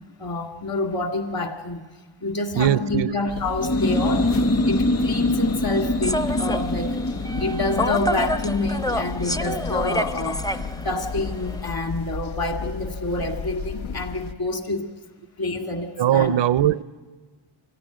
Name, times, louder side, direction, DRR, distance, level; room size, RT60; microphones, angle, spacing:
voice 1, 0.2-1.8 2.2-4.3 4.7-7.0 7.4-10.4 10.7-14.9 15.4-16.3, left 2 dB, 50° left, 2.1 m, -27 dB
voice 2, 2.6-3.1 16.0-16.8, right 11 dB, 65° right, 0.6 m, -20 dB
sound 1, 3.3-14.3, left 5 dB, 85° left, 0.9 m, -34 dB
sound 2, 3.5-11.0, left 1 dB, 30° left, 0.9 m, -26 dB
Human voice / Subway metro underground, 6.0-11.7, left 1 dB, 10° left, 0.5 m, -29 dB
24.0 x 15.5 x 9.0 m
wide cardioid pair, 95°, 46 cm